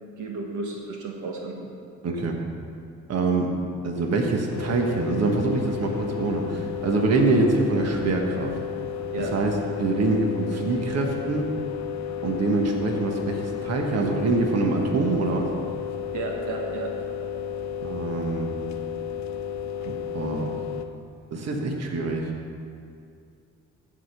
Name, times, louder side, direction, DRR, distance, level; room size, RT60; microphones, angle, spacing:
voice 1, 0.2-1.7 9.1-9.3 16.1-16.9, right 3 dB, 80° right, 0 dB, 1.4 m, -33 dB
voice 2, 2.0-2.4 3.1-3.5 3.8-8.5 9.3-9.5 9.8-11.5 12.2-15.5 17.8-18.5 20.1-20.5 21.3-22.3, right 3 dB, 55° right, 1 dB, 1.4 m, -24 dB
sound 1, 4.5-20.9, left 8 dB, 65° left, 0.8 m, -33 dB
15.0 x 5.1 x 5.9 m, 2.4 s
cardioid pair, 90°, 30 cm